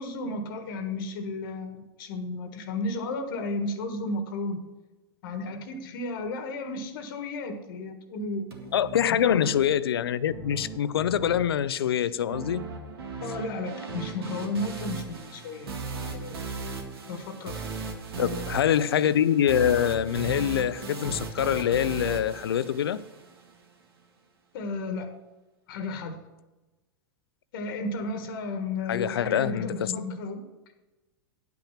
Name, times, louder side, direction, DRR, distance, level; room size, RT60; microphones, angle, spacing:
voice 1, 0.0-4.6 5.2-8.5 9.1-9.7 13.2-15.7 16.1-16.6 17.1-17.7 24.5-25.1 25.7-26.2 27.5-30.5, left 2 dB, 65° left, 1.4 m, -33 dB
sound 1, 8.5-23.5, right 4 dB, 85° right, 1.8 m, -38 dB
voice 2, 8.7-12.7 18.2-23.0 28.9-29.9, left 9 dB, 85° left, 0.5 m, -25 dB
10.5 x 5.8 x 5.8 m
hypercardioid pair, 115°, 12 cm